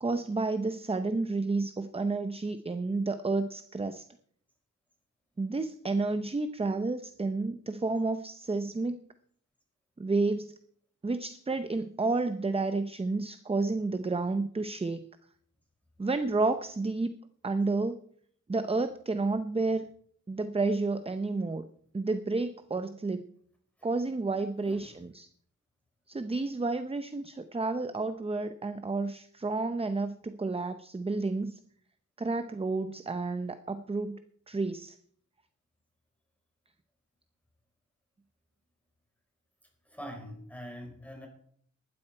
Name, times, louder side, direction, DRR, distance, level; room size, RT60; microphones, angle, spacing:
voice 1, 0.0-4.0 5.4-9.1 10.0-10.5 11.0-15.0 16.0-17.1 17.4-18.0 18.5-19.9 20.3-21.6 21.9-23.3 23.8-25.3 26.1-31.6 32.2-34.2 34.5-34.9, right 3 dB, 20° right, 10 dB, 0.6 m, -30 dB
voice 2, 24.6-25.0 39.8-41.3, equal, 5° left, 2 dB, 4.7 m, -45 dB
18.5 x 12.5 x 4.4 m, 0.62 s
wide cardioid pair, 155°, 32 cm